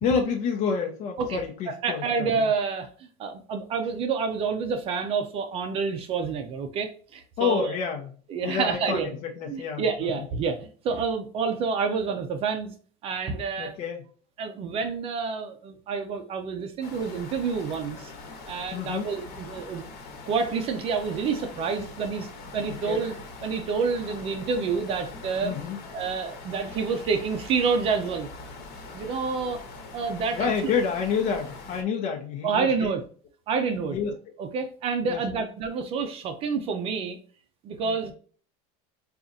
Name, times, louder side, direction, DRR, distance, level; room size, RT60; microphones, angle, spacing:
voice 1, 0.0-2.5 7.4-8.1 8.4-10.2 13.6-14.0 18.7-19.1 22.7-23.1 25.4-25.8 30.3-32.9 33.9-34.1 35.0-35.2 37.8-38.1, left 6 dB, 50° left, 0 dB, 0.7 m, -29 dB
voice 2, 1.8-7.8 8.3-9.1 9.5-12.7 13.0-13.7 14.4-18.1 18.5-19.9 20.3-22.3 22.5-23.1 23.4-25.5 25.9-28.3 28.9-29.6 29.9-30.7 32.4-33.0 33.5-34.0 34.4-37.2 37.6-38.1, right 5 dB, 35° right, 6 dB, 0.5 m, -28 dB
sound 1, 16.8-31.8, left 3 dB, 70° left, 1.2 m, -43 dB
4.9 x 2.4 x 2.6 m, 0.44 s
cardioid pair, 155°, 16 cm